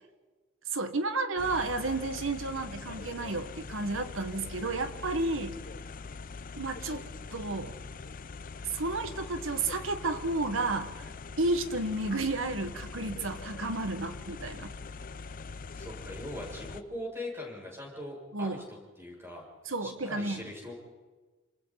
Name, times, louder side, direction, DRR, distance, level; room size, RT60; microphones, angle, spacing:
voice 1, 0.7-5.6 6.6-7.0 7.3-7.7 8.7-11.1 11.4-14.7 18.3-18.6 19.7-20.5, right 2 dB, 80° right, 8 dB, 1.6 m, -32 dB
sound 1, 1.4-16.8, left 4 dB, 45° left, 0.6 m, -43 dB
voice 2, 15.8-19.5 19.8-20.7, left 1 dB, 15° right, -2 dB, 6.8 m, -41 dB
28.0 x 27.0 x 4.1 m, 1.3 s
head